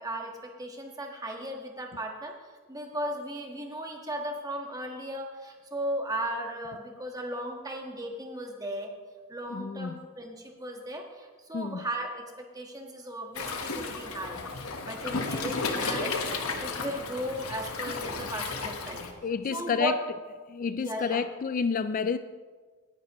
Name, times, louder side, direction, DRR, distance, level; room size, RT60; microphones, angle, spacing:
voice 1, 0.0-2.3 2.7-8.9 9.3-14.4 14.8-16.2 16.6-19.1 19.5-20.0 20.7-21.2, right 1 dB, 15° right, 2 dB, 1.4 m, -36 dB
voice 2, 9.5-9.9 11.5-11.8 18.2-18.3 19.2-20.0 20.5-22.2, left 6 dB, 40° left, 12 dB, 0.3 m, -29 dB
Waves surf, 13.4-19.1, left 4 dB, 80° left, 1.2 m, -33 dB
18.5 x 10.0 x 3.0 m, 1.5 s
head